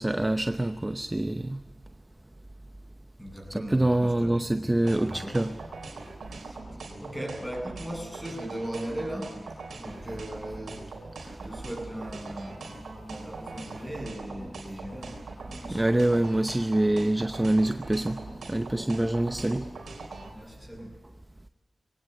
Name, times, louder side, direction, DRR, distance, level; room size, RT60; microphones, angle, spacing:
voice 1, 0.0-1.6 3.5-5.5 11.2-11.3 15.7-18.2 18.5-19.7, right 1 dB, 20° right, 9 dB, 0.8 m, -25 dB
voice 2, 3.2-5.4 6.3-6.6 7.0-10.9 11.3-15.9 19.4-19.5 20.3-21.0, right 1 dB, 5° left, 2 dB, 8.0 m, -39 dB
sound 1, 4.9-20.3, right 3 dB, 85° right, 3.6 m, -41 dB
21.0 x 17.5 x 8.0 m, 1.3 s
cardioid pair, 45°, 0 cm